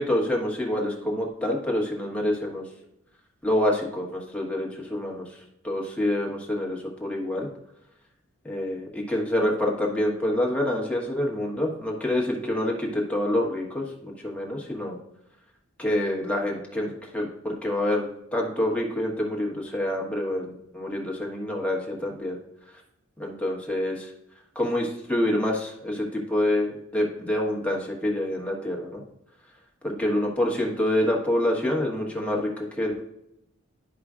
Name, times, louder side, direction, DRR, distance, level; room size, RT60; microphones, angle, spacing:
voice 1, 0.0-2.6 3.4-5.3 5.6-7.5 8.4-15.0 15.8-18.1 18.3-22.4 23.2-24.1 24.5-29.0 29.8-32.5 32.8-33.0, left 1 dB, 5° left, -2 dB, 1.3 m, -27 dB
11.0 x 5.0 x 2.4 m, 0.82 s
head